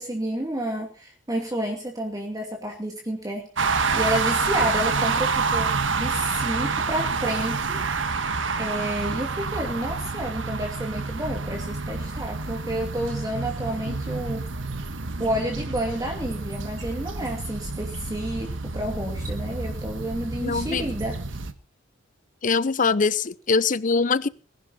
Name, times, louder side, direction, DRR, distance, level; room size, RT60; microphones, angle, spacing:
voice 1, 0.0-8.1 8.6-14.5 15.2-21.2, right 1 dB, 20° right, 2.6 m, -30 dB
sound 1, 3.6-21.5, right 4 dB, 75° right, 1.5 m, -28 dB
voice 2, 20.4-20.8 22.4-24.3, left 4 dB, 45° left, 0.7 m, -22 dB
21.0 x 11.0 x 4.2 m
head